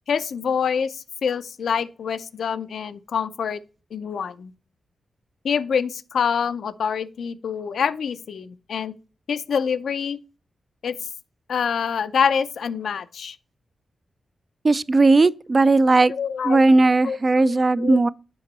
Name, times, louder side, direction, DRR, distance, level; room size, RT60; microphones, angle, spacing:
voice 1, 0.1-3.6 3.9-4.5 5.4-8.9 9.3-10.2 10.8-11.0 11.5-13.4 16.1-16.6 17.0-18.1, left 6 dB, 75° left, 0.5 m, -26 dB
voice 2, 14.6-16.1 16.4-18.1, right 3 dB, 35° right, 0.3 m, -17 dB
7.7 x 5.2 x 4.0 m
cardioid pair, 75°, 0 cm